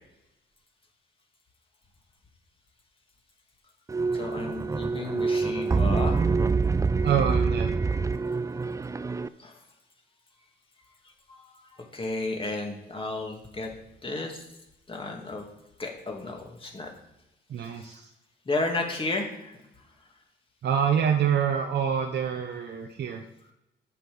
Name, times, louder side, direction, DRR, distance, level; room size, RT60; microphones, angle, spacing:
sound 1, 3.9-9.3, right 4 dB, 15° right, 0.3 m, -26 dB
voice 1, 4.1-6.3 9.4-9.6 11.3-11.4 11.9-13.7 14.0-14.4 14.9-15.5 15.8-16.9 17.8-17.9 18.5-19.5, left 2 dB, 25° left, 1 dB, 2.3 m, -32 dB
voice 2, 7.0-7.7 17.5-18.1 20.6-23.2, right 8 dB, 60° right, 4 dB, 0.9 m, -26 dB
8.3 x 5.9 x 7.0 m, 0.93 s
cardioid pair, 90°, 20 cm